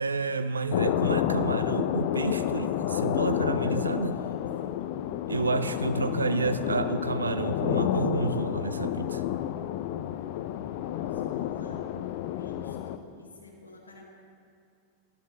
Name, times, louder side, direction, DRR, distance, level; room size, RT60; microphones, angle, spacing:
voice 1, 0.0-4.1 5.3-9.2, right 4 dB, 75° right, 11 dB, 0.4 m, -30 dB
sound 1, 0.7-13.0, left 11 dB, 50° left, 0.4 m, -30 dB
voice 2, 4.1-4.9 10.6-11.9 12.3-14.1, left 3 dB, 80° left, -1 dB, 1.1 m, -50 dB
12.5 x 12.5 x 3.7 m, 2.4 s
figure-of-eight pair, 90°, 0 cm